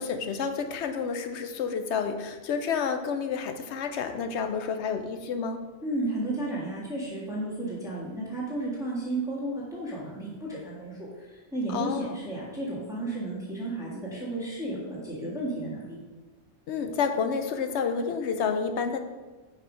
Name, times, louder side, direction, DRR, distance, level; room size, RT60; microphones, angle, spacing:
voice 1, 0.0-5.6 11.7-12.2 16.7-19.0, left 6 dB, 75° left, 7 dB, 0.9 m, -29 dB
voice 2, 5.8-16.0, right 2 dB, 5° right, -7 dB, 1.6 m, -33 dB
5.7 x 4.7 x 5.0 m, 1.3 s
omnidirectional pair, 1.2 m